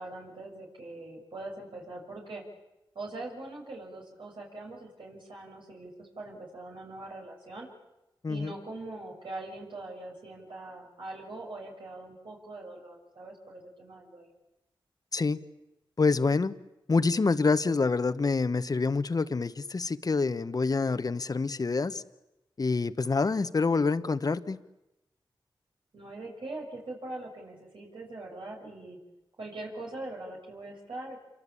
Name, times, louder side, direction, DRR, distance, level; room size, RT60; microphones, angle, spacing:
voice 1, 0.0-2.4 2.9-7.7 8.3-14.3 25.9-29.0 29.4-31.2, right 2 dB, 70° right, -2 dB, 6.6 m, -42 dB
voice 2, 16.0-16.5 16.9-22.0 22.6-24.6, left 4 dB, 45° left, 12 dB, 1.3 m, -26 dB
27.5 x 24.0 x 8.7 m, 0.95 s
cardioid pair, 65°, 9 cm